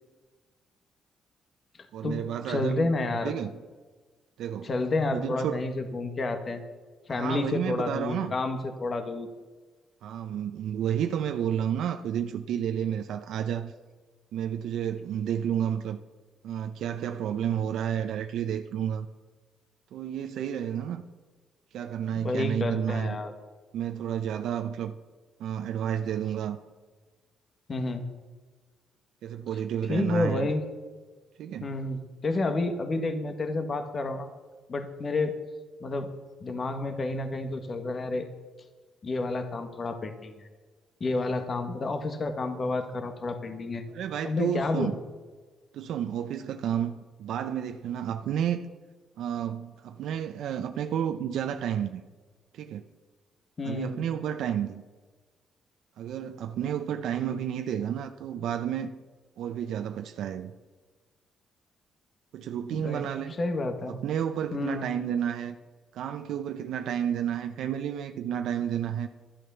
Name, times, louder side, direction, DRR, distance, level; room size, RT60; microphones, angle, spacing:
voice 1, 1.9-2.9 3.2-3.5 4.4-4.7 5.1-5.7 7.1-8.4 10.0-13.7 14.3-16.0 16.4-19.1 19.9-21.0 21.7-23.2 23.7-24.9 25.4-26.6 29.2-30.5 31.4-31.8 43.9-45.0 45.7-48.7 49.2-52.0 52.5-52.9 53.6-54.8 56.0-58.9 59.4-60.5 62.3-63.3 63.9-65.6 65.9-69.1, right 9 dB, 80° right, 0.6 m, -31 dB
voice 2, 2.5-3.3 4.6-6.6 7.1-9.3 22.2-23.3 27.7-28.0 29.9-30.6 31.6-34.3 34.7-35.3 35.8-36.1 36.4-38.3 39.0-40.5 41.0-43.8 44.2-44.9 53.6-54.0 62.7-63.1 63.4-64.0 64.5-64.8, left 2 dB, 40° left, 1.5 m, -30 dB
11.5 x 11.0 x 6.9 m
cardioid pair, 90°, 0 cm